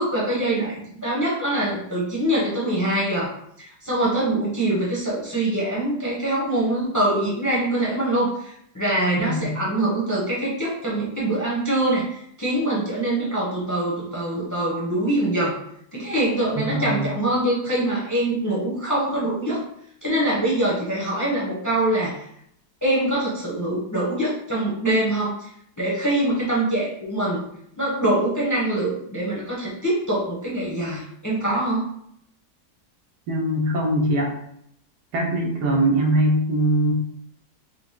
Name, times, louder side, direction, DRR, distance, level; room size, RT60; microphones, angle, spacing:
voice 1, 0.0-3.3 3.6-15.5 15.9-19.6 20.0-22.3 22.8-25.5 25.8-27.5 27.8-31.9, right 1 dB, 15° left, -5 dB, 0.8 m, -24 dB
voice 2, 9.2-9.5 16.5-17.1 33.3-34.3 35.1-36.9, right 1 dB, 85° right, 0 dB, 1.5 m, -22 dB
4.9 x 2.2 x 3.6 m, 0.71 s
omnidirectional pair, 1.7 m